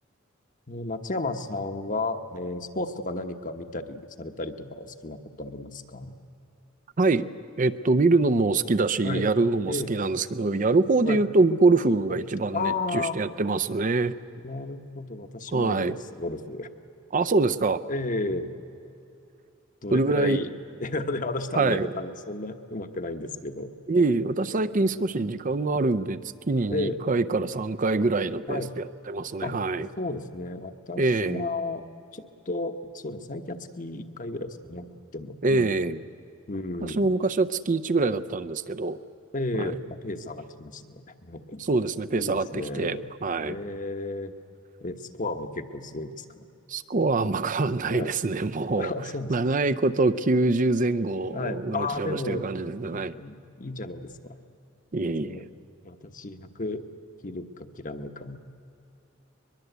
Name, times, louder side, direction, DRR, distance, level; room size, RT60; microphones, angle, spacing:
voice 1, 0.7-6.1 9.0-9.3 9.7-9.9 11.0-11.2 12.1-12.2 12.5-13.2 14.4-16.7 17.9-18.5 19.8-20.5 20.8-23.7 26.7-27.0 28.5-28.7 29.4-29.5 30.0-31.8 32.1-35.8 36.5-37.1 39.3-41.6 42.1-43.0 43.4-44.3 44.8-46.4 47.9-48.1 48.7-49.3 51.3-54.3 55.0-55.5 55.8-56.8 57.2-58.4, left 2 dB, 40° left, 7 dB, 1.2 m, -33 dB
voice 2, 7.6-14.1 15.5-16.0 17.1-17.8 19.9-20.4 21.5-21.9 23.9-26.2 26.5-29.9 31.0-31.5 35.4-36.0 36.8-39.0 39.6-39.7 41.6-43.6 46.7-48.9 49.3-53.1 54.9-55.4, right 3 dB, 40° right, 13 dB, 0.6 m, -24 dB
22.5 x 22.0 x 8.1 m, 2.7 s
head